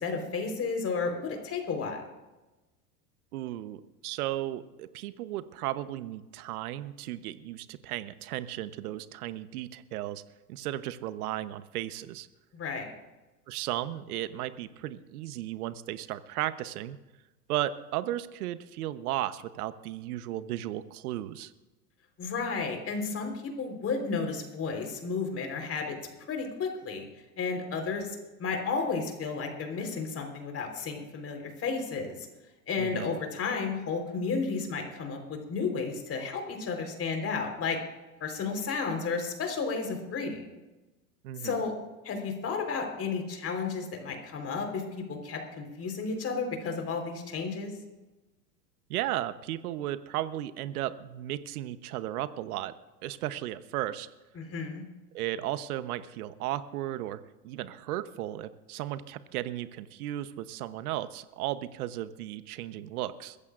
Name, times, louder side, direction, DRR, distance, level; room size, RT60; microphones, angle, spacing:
voice 1, 0.0-2.0 12.5-12.9 22.2-25.9 26.3-27.0 27.4-32.3 32.7-37.8 38.2-40.5 41.4-41.7 42.0-47.7 54.3-54.8, left 4 dB, 30° left, 3 dB, 4.1 m, -32 dB
voice 2, 3.3-10.2 10.5-12.3 13.5-17.0 17.5-21.5 32.8-33.2 41.2-41.6 48.9-52.7 53.0-54.1 55.1-63.4, right 14 dB, 65° right, 13 dB, 1.0 m, -35 dB
22.0 x 15.0 x 2.5 m, 1.1 s
hypercardioid pair, 100°, 47 cm